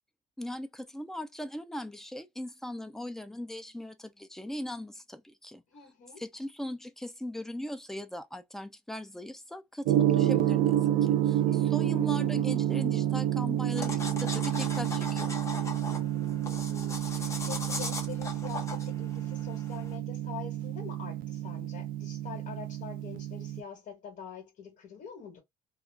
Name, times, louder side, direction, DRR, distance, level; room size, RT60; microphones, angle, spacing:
voice 1, 0.4-5.6 6.2-15.4, left 1 dB, 5° left, 0.4 m, -39 dB
voice 2, 5.7-6.2 11.5-12.4 16.4-25.4, left 7 dB, 55° left, 1.2 m, -45 dB
Gong, 9.8-23.6, right 12 dB, 75° right, 0.5 m, -29 dB
sound 1, 13.8-20.0, left 3 dB, 20° left, 0.8 m, -39 dB
2.3 x 2.3 x 3.3 m
cardioid pair, 135°, 15 cm